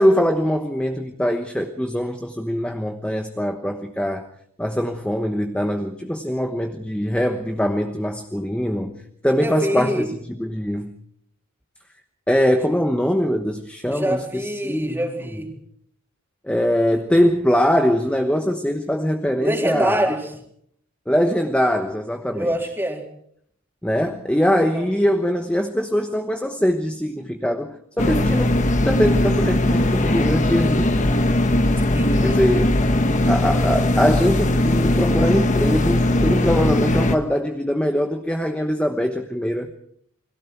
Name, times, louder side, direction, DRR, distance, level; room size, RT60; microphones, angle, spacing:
voice 1, 0.0-4.3 4.6-10.9 12.3-15.0 16.4-20.2 21.1-22.5 23.8-28.5 28.8-31.1 32.2-32.9 33.2-39.7, equal, 5° left, 5 dB, 1.1 m, -22 dB
voice 2, 9.4-10.1 13.9-15.5 19.4-20.2 22.3-23.0 24.6-24.9 31.9-32.4, right 1 dB, 10° right, 2 dB, 3.4 m, -25 dB
sound 1, 28.0-37.2, left 1 dB, 35° left, 1.5 m, -19 dB
30.0 x 22.0 x 4.6 m, 0.67 s
head